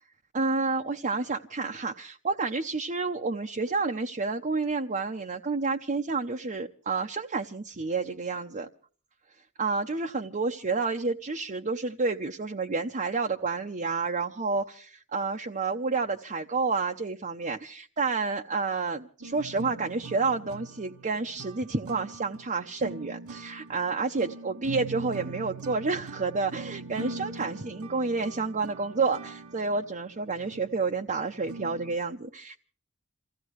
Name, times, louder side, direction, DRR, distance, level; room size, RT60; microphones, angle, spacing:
voice 1, 0.3-8.7 9.6-32.6, right 4 dB, 35° right, 0.8 m, -30 dB
sound 1, 19.2-32.0, right 4 dB, 85° right, 1.3 m, -42 dB
28.0 x 16.0 x 3.1 m
head